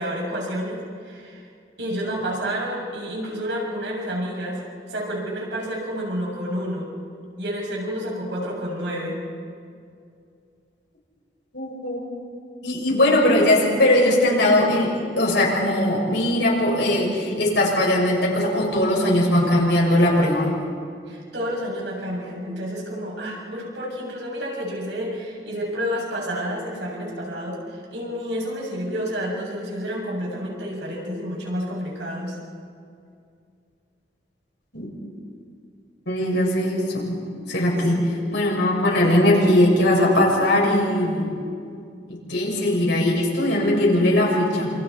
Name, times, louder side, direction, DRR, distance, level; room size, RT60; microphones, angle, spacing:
voice 1, 0.0-1.5 1.8-4.6 4.9-6.9 7.4-9.2 21.1-32.4 37.9-38.3, equal, 75° right, -2 dB, 7.5 m, -30 dB
voice 2, 11.5-12.0 12.6-20.6 34.7-34.9 36.1-37.2 37.5-38.0 38.3-41.3 42.1-44.7, left 1 dB, 80° left, -3 dB, 6.7 m, -20 dB
28.0 x 27.5 x 4.3 m, 2.3 s
head